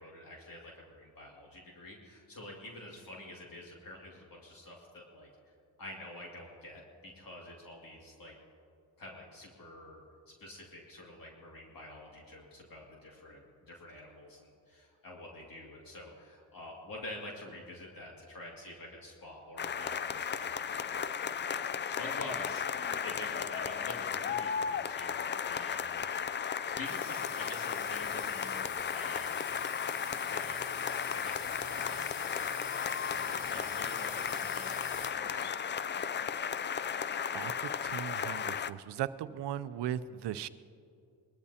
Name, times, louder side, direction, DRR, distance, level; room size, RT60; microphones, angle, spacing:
voice 1, 0.0-5.3 5.8-8.3 9.0-25.9 26.3-29.5 30.3-30.6 31.1-31.4 31.7-32.1 32.4-32.7 33.0-35.5, left 1 dB, 55° left, -2 dB, 2.4 m, -48 dB
sound 1, 19.6-38.7, left 7 dB, 30° left, 0.3 m, -35 dB
sound 2, 26.8-35.1, left 4 dB, 75° left, 1.8 m, -46 dB
voice 2, 37.3-40.5, right 11 dB, 75° right, 14 dB, 0.6 m, -38 dB
21.0 x 13.5 x 2.8 m, 2.5 s
cardioid pair, 75°, 42 cm